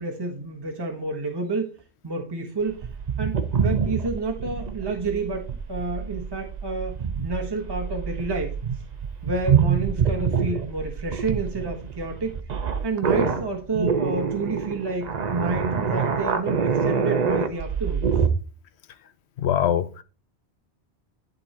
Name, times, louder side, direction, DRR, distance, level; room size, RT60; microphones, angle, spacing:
voice 1, 0.0-1.7 2.0-2.9 3.2-8.6 9.2-12.3 12.8-18.1, right 3 dB, 25° right, 1.1 m, -29 dB
sound 1, 2.7-18.3, right 6 dB, 45° right, 0.8 m, -26 dB
voice 2, 19.4-20.0, left 9 dB, 75° left, 0.9 m, -23 dB
11.0 x 3.9 x 4.3 m
omnidirectional pair, 1.1 m